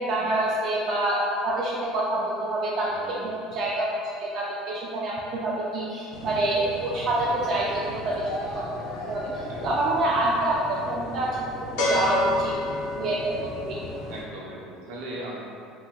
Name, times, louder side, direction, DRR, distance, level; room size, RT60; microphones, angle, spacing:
voice 1, 0.0-3.9 4.2-9.2 9.6-11.4 11.8-12.5 13.0-13.8, right 2 dB, 40° right, -5 dB, 0.3 m, -27 dB
voice 2, 2.8-3.4 9.5-9.9 14.1-15.4, right 1 dB, 80° right, -4 dB, 0.7 m, -39 dB
sound 1, 6.1-14.2, left 2 dB, 90° left, 0.5 m, -32 dB
3.6 x 2.9 x 2.3 m, 2.3 s
cardioid pair, 160°, 0 cm